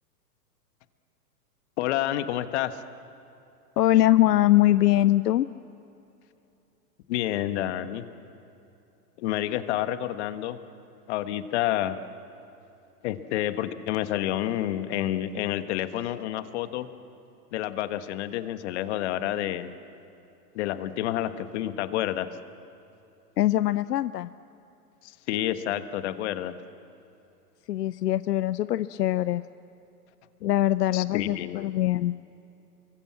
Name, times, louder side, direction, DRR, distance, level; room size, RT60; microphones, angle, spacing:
voice 1, 1.8-2.8 7.1-8.1 9.2-10.6 11.1-12.0 13.0-16.9 17.5-19.7 20.5-22.3 25.0-26.5 30.9-31.6, left 13 dB, 45° left, 10 dB, 1.4 m, -29 dB
voice 2, 3.8-5.5 23.4-24.3 27.7-29.4 30.4-32.2, left 14 dB, 75° left, 15 dB, 0.7 m, -22 dB
30.0 x 23.5 x 7.5 m, 2.9 s
hypercardioid pair, 140°, 48 cm